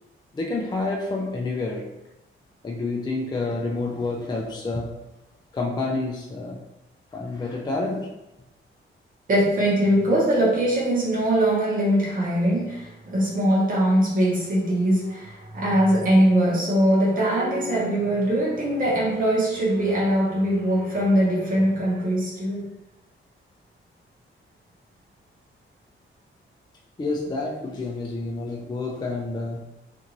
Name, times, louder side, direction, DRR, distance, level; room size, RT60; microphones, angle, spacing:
voice 1, 0.3-1.9 2.6-5.0 5.5-6.6 7.1-8.1 27.0-29.6, left 3 dB, 20° left, -1 dB, 0.3 m, -28 dB
voice 2, 9.3-22.6, right 1 dB, 40° right, -5 dB, 0.9 m, -21 dB
2.6 x 2.5 x 2.9 m, 0.93 s
wide cardioid pair, 120°, 21 cm